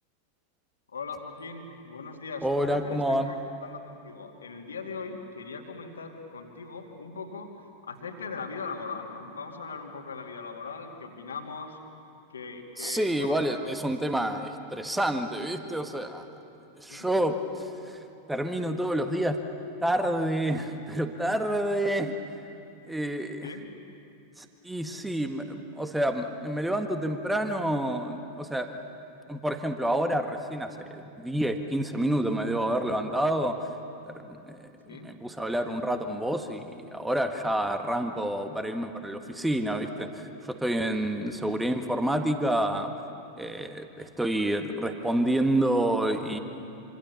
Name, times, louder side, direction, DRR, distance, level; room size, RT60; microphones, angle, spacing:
voice 1, 0.9-3.4 3.6-11.8 12.3-13.7 16.9-17.1 23.4-23.6 34.9-35.1 41.2-41.4, left 4 dB, 70° left, 2 dB, 2.6 m, -40 dB
voice 2, 2.4-3.3 12.8-16.2 16.8-18.0 18.3-19.4 19.8-22.1 22.9-23.5 24.4-28.7 29.3-33.6 34.1-42.9 43.4-46.4, right 1 dB, 5° right, 7 dB, 1.6 m, -28 dB
26.5 x 26.0 x 7.0 m, 2.7 s
figure-of-eight pair, 90°, 0 cm